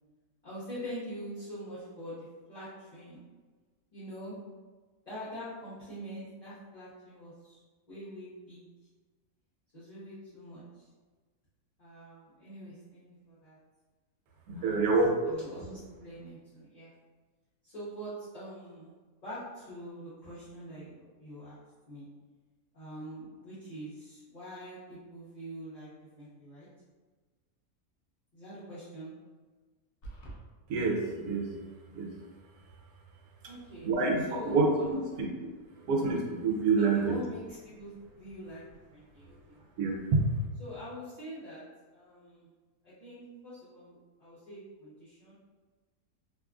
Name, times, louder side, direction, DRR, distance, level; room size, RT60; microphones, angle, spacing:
voice 1, 0.4-3.2 3.9-4.4 5.1-7.6 7.9-8.6 9.7-10.6 11.8-13.6 14.5-14.8 15.2-16.9 17.6-18.9 19.2-21.5 21.9-22.1 22.7-26.7 28.3-29.1 33.4-33.9 34.3-35.1 36.8-37.9 38.2-39.6 40.6-41.6 41.9-42.5 42.8-45.3, equal, 35° left, -13 dB, 0.7 m, -44 dB
voice 2, 14.5-15.1 30.7-31.5 31.9-32.1 33.8-34.7 35.2-35.3 35.9-37.2 39.8-40.2, right 4 dB, 80° right, 0 dB, 1.1 m, -27 dB
sound 1, 30.0-30.4, right 2 dB, 75° left, 0.5 m, -43 dB
2.8 x 2.3 x 2.3 m, 1.3 s
omnidirectional pair, 1.6 m